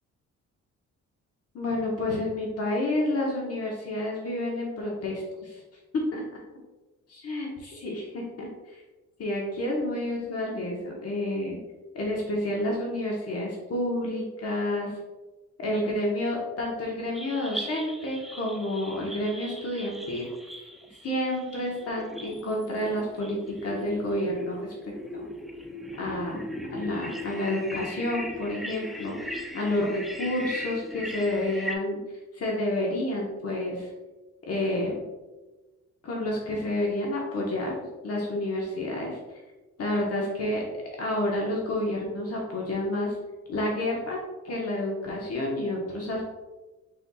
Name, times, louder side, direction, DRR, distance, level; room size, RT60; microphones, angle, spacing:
voice 1, 1.5-5.6 5.9-6.2 7.2-8.5 8.7-8.8 9.2-11.6 11.9-14.9 15.6-20.3 21.0-24.7 25.1-25.3 25.9-26.4 26.7-32.0 32.3-33.9 34.4-35.0 36.0-37.7 38.0-39.2 39.8-40.6 41.0-43.2 43.5-44.2 44.4-46.2, left 1 dB, 55° left, -2 dB, 1.1 m, -29 dB
sound 1, 17.1-31.8, equal, ahead, 0.4 m, -39 dB
5.4 x 4.1 x 2.3 m, 1.2 s
cardioid pair, 90°, 30 cm